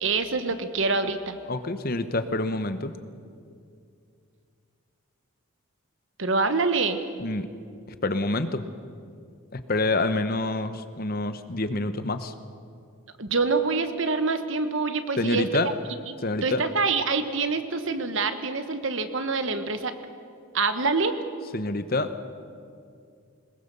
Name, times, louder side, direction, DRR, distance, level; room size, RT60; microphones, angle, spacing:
voice 1, 0.0-1.4 6.2-7.0 13.2-15.7 16.1-16.2 16.4-19.9 20.5-21.1, right 4 dB, 60° right, 9 dB, 1.3 m, -26 dB
voice 2, 1.5-2.9 7.2-7.5 8.0-8.6 9.5-12.3 15.2-15.7 16.2-16.6 21.5-22.1, left 2 dB, 40° left, 10 dB, 0.9 m, -27 dB
22.0 x 20.5 x 6.9 m, 2.3 s
head